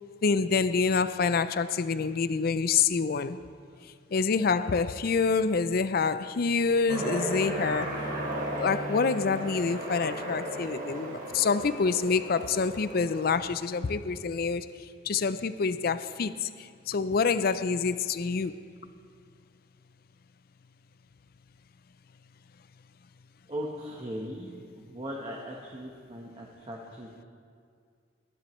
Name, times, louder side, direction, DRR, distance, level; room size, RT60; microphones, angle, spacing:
voice 1, 0.2-3.4 4.1-8.0 8.6-14.7 15.1-18.6, left 5 dB, 55° left, 0.4 m, -27 dB
Aircraft, 6.9-13.3, right 1 dB, 50° right, 1.9 m, -35 dB
voice 2, 23.5-27.2, equal, 30° right, 1.1 m, -39 dB
21.5 x 10.5 x 3.1 m
head